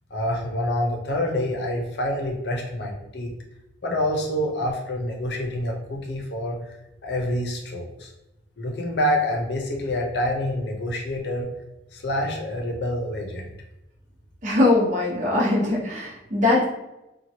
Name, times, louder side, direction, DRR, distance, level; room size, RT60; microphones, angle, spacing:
voice 1, 0.1-3.3 3.8-6.6 7.0-8.1 8.6-11.5 11.9-13.4, left 1 dB, 70° left, 0 dB, 0.6 m, -27 dB
voice 2, 14.4-16.6, left 2 dB, 45° right, -5 dB, 1.0 m, -21 dB
2.9 x 2.3 x 2.7 m, 0.93 s
head